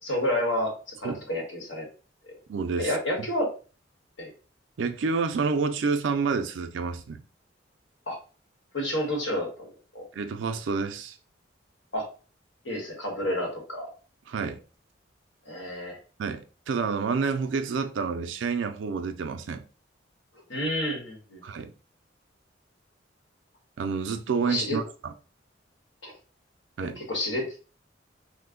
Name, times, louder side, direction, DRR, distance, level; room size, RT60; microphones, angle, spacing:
voice 1, 0.0-1.9 2.3-2.4 2.8-3.5 4.2-4.3 8.1-8.2 8.7-9.7 9.9-10.0 11.9-12.0 12.6-13.9 15.5-16.0 20.5-21.4 24.4-24.8 26.0-26.1 26.8-27.6, left 1 dB, 85° left, 1.3 m, -30 dB
voice 2, 2.5-2.9 4.8-7.2 10.2-11.2 14.3-14.6 16.2-19.7 21.4-21.7 23.8-25.1 26.8-27.0, right 5 dB, 80° right, 0.4 m, -29 dB
3.1 x 2.1 x 3.6 m
head